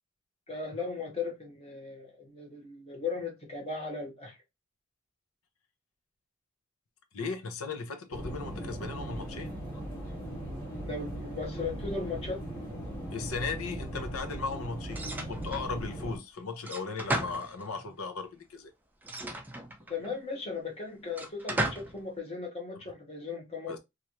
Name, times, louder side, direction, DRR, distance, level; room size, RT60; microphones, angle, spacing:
voice 1, 0.5-4.4 10.8-12.4 19.9-23.8, left 4 dB, 30° left, 1.0 m, -37 dB
voice 2, 7.1-9.5 13.1-18.7 23.7-23.8, left 4 dB, 85° left, 0.6 m, -37 dB
sound 1, 8.1-16.2, right 1 dB, 5° left, 1.6 m, -39 dB
sound 2, 14.9-15.7 16.6-17.9 19.0-20.1 21.1-22.0, right 1 dB, 10° right, 0.3 m, -35 dB
3.0 x 2.5 x 2.9 m
head